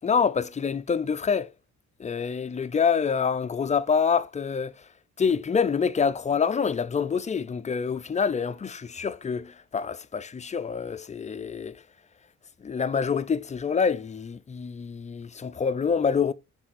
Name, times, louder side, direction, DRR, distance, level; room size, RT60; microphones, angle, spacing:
voice 1, 0.0-1.5 2.0-4.8 5.2-11.8 12.6-16.3, left 6 dB, 25° left, 0.5 m, -26 dB
5.7 x 3.4 x 4.8 m
cardioid pair, 90°, 30 cm